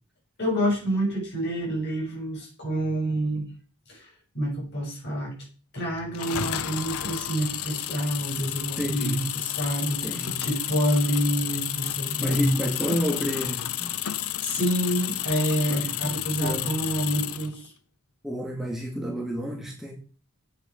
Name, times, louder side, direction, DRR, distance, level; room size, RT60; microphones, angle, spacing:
voice 1, 0.4-3.5 3.9-5.4 5.7-12.7 14.4-17.7, equal, 50° left, -1 dB, 6.5 m, -28 dB
sound 1, 6.1-17.5, left 11 dB, 75° left, 0.7 m, -31 dB
voice 2, 8.8-9.3 10.0-10.4 12.2-13.9 15.7-16.7 18.2-19.9, equal, ahead, -2 dB, 2.0 m, -31 dB
10.0 x 8.5 x 5.2 m, 0.38 s
head